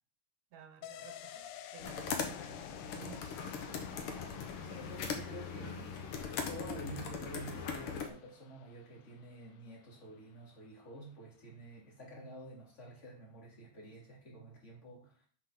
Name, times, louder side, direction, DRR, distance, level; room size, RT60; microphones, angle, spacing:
voice 1, 0.5-1.5 1.7-3.3, right 7 dB, 70° right, 6 dB, 2.1 m, -54 dB
sound 1, 0.8-10.2 10.5-10.6, left 11 dB, 85° left, 2.1 m, -53 dB
sound 2, 1.8-8.1, left 5 dB, 60° left, 1.6 m, -40 dB
voice 2, 3.9-5.8 6.5-15.2, right 1 dB, 25° left, -3 dB, 2.8 m, -49 dB
6.0 x 5.8 x 6.0 m, 0.43 s
omnidirectional pair, 3.4 m